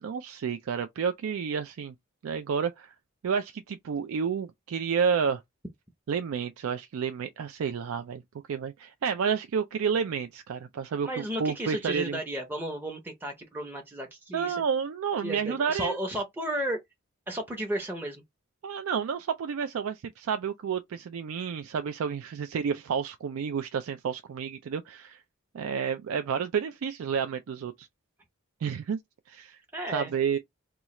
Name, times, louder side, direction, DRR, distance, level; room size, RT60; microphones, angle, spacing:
voice 1, 0.0-1.9 2.2-2.9 3.2-5.4 6.1-8.2 8.5-12.2 14.3-16.0 18.6-25.2 25.5-27.9 28.6-29.0 29.3-29.6 29.9-30.4, right 6 dB, 85° right, 0.4 m, -30 dB
voice 2, 11.0-14.6 15.2-16.8 17.3-18.2 29.7-30.1, right 1 dB, 10° right, 0.6 m, -33 dB
2.9 x 2.3 x 4.1 m
head